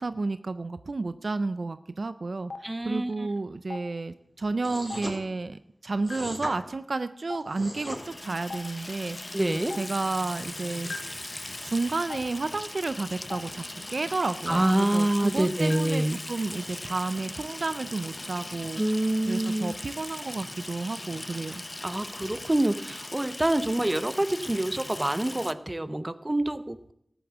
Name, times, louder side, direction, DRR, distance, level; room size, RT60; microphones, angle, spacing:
voice 1, 0.0-9.4 9.8-11.0 11.6-13.6 13.9-18.8 19.3-21.6, right 3 dB, 65° right, 12 dB, 0.4 m, -31 dB
Stream, 2.5-2.6 3.7-3.8 4.9-5.0 6.1-6.2 7.3-7.4 8.5-8.6 9.7-9.8 10.9-11.0 12.1-12.2 13.3-13.4 14.5-14.6 15.7-15.8, left 4 dB, 75° left, 1.1 m, -35 dB
voice 2, 2.6-3.3 9.3-9.8 14.5-16.2 18.8-19.7 21.8-26.9, right 1 dB, 30° right, 13 dB, 0.7 m, -26 dB
sound 1, 4.6-5.2 6.0-6.5 7.4-8.0, equal, 5° left, 3.8 m, -37 dB
Water tap faucet / Sink (filling or washing), 7.6-25.5, left 1 dB, 35° left, 0.6 m, -40 dB
13.5 x 7.1 x 7.3 m, 0.75 s
cardioid pair, 40°, 0 cm